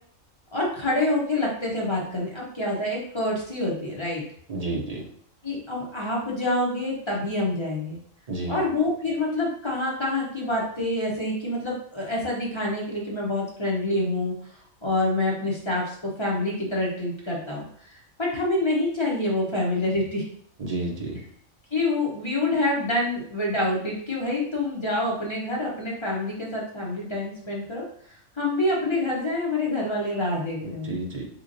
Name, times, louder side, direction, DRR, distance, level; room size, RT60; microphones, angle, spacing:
voice 1, 0.5-4.2 5.4-8.0 8.5-14.3 14.8-17.6 18.2-20.2 21.7-27.8 28.4-31.0, left 2 dB, 30° left, -4 dB, 0.6 m, -27 dB
voice 2, 4.5-5.0 8.3-8.6 20.6-21.2 30.6-31.3, right 2 dB, 45° right, -1 dB, 0.5 m, -31 dB
3.6 x 2.9 x 2.5 m, 0.62 s
omnidirectional pair, 1.4 m